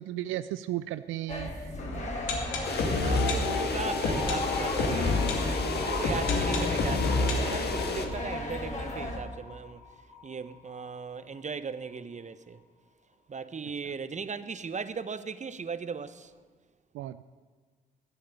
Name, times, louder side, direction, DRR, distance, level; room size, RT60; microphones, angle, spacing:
voice 1, 0.0-1.7 16.9-17.2, right 14 dB, 80° right, 0.5 m, -35 dB
sound 1, 1.3-9.2, left 1 dB, 35° left, 3.7 m, -36 dB
sound 2, 1.8-9.5 9.8-9.9 10.1-10.2 10.7-10.8, left 3 dB, 75° left, 2.4 m, -30 dB
sound 3, 2.6-8.1, left 4 dB, 55° left, 2.0 m, -33 dB
voice 2, 2.9-9.8 10.2-12.6 13.3-16.3, right 5 dB, 35° right, 1.0 m, -38 dB
13.0 x 8.6 x 9.9 m
supercardioid pair, 50°, 20 cm